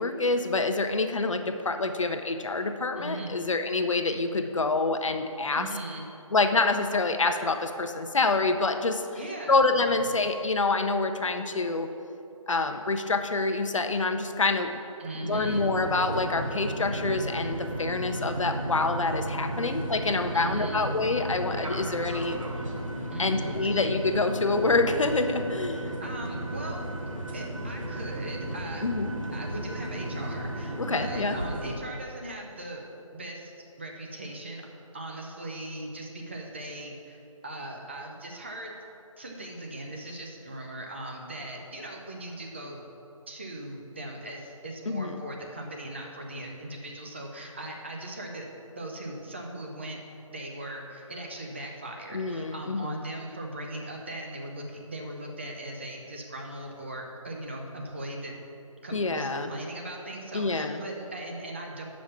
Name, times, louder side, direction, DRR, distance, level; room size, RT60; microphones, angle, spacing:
voice 1, 0.0-5.7 6.3-9.0 9.5-11.9 12.5-14.7 15.2-22.4 23.2-25.9 28.8-29.1 30.8-31.4 44.9-45.2 52.1-53.0 58.9-59.5 60.3-60.8, left 3 dB, 65° left, 7 dB, 0.7 m, -27 dB
voice 2, 3.0-3.3 5.5-6.1 9.2-9.6 9.9-10.1 15.0-15.6 20.3-20.9 23.1-23.8 26.0-26.9 27.3-28.9 29.3-32.8 33.1-33.5 33.8-34.6 34.9-38.8 39.2-42.8 43.3-50.0 50.3-58.3 58.8-61.8, right 1 dB, 20° right, 0 dB, 0.6 m, -39 dB
sound 1, 15.3-31.7, right 1 dB, 70° right, 1.3 m, -34 dB
7.0 x 5.2 x 7.0 m, 2.8 s
figure-of-eight pair, 165°, 18 cm